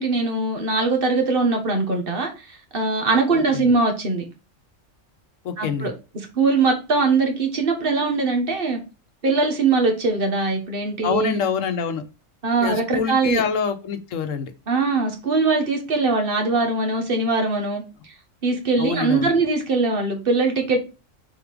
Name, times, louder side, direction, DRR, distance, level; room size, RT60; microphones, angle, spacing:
voice 1, 0.0-2.3 2.7-4.2 5.6-5.9 6.3-8.8 9.2-11.4 12.4-13.4 14.7-17.8 18.4-20.8, right 3 dB, 45° right, 3 dB, 1.6 m, -21 dB
voice 2, 3.3-3.7 5.4-5.9 11.0-12.0 12.6-14.5 18.8-19.3, left 6 dB, 80° left, 9 dB, 1.2 m, -25 dB
6.9 x 4.4 x 3.6 m, 0.31 s
omnidirectional pair, 1.3 m